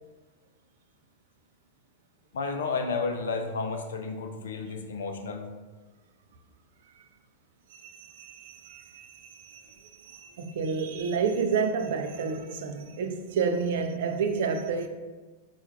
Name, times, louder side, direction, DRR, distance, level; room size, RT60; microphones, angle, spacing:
voice 1, 2.3-5.5, left 4 dB, 65° left, 0.4 m, -32 dB
voice 2, 7.7-14.9, right 5 dB, 55° right, 0.4 m, -30 dB
4.3 x 2.3 x 4.4 m
figure-of-eight pair, 90°, 0 cm